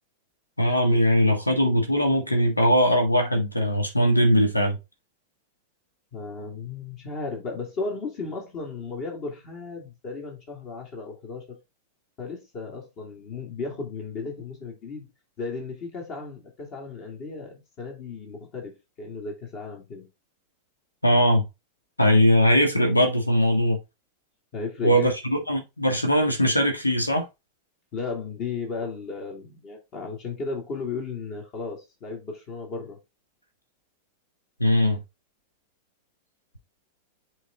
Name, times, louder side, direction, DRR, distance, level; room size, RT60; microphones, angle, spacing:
voice 1, 0.6-4.8 21.0-21.4 22.0-23.8 24.8-27.2 34.6-35.0, equal, 85° left, 1.3 m, -20 dB
voice 2, 6.1-11.6 12.2-15.1 15.4-20.1 24.5-25.1 27.9-33.0, left 4 dB, 40° left, 2.7 m, -35 dB
7.9 x 3.9 x 3.7 m
figure-of-eight pair, 90°, 0 cm